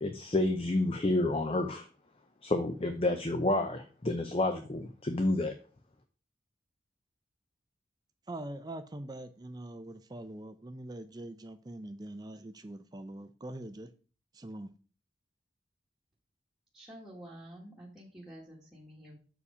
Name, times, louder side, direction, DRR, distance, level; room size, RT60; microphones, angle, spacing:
voice 1, 0.0-1.9 2.4-5.5, left 2 dB, 30° left, 0.6 m, -29 dB
voice 2, 8.3-13.9 14.3-14.7, right 1 dB, 20° right, 0.4 m, -43 dB
voice 3, 16.7-19.2, right 1 dB, 5° right, 1.5 m, -49 dB
6.9 x 4.9 x 4.9 m
head